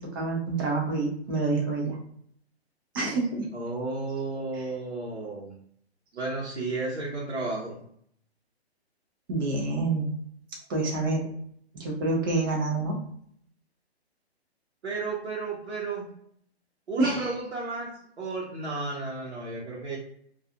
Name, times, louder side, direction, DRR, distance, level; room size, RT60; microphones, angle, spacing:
voice 1, 0.1-2.0 2.9-3.5 4.5-4.6 9.3-10.1 10.7-11.3 11.7-13.0 17.0-17.3, right 3 dB, 20° right, -1 dB, 0.5 m, -27 dB
voice 2, 3.5-5.5 6.1-7.8 14.8-16.1 16.9-17.9 18.2-20.0, right 3 dB, 75° right, -4 dB, 0.9 m, -33 dB
2.4 x 2.4 x 2.7 m, 0.66 s
figure-of-eight pair, 130°, 33 cm